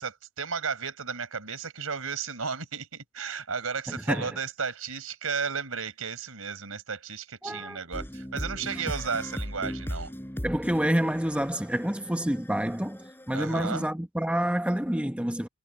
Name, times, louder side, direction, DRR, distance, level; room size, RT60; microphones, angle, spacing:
voice 1, 0.0-10.1 13.3-13.8, right 5 dB, 70° right, 5.5 m, -34 dB
voice 2, 3.9-4.4 7.4-7.8 8.7-8.8 10.4-15.5, equal, 5° right, 1.1 m, -28 dB
sound 1, 7.9-13.9, equal, 10° left, 4.5 m, -38 dB
head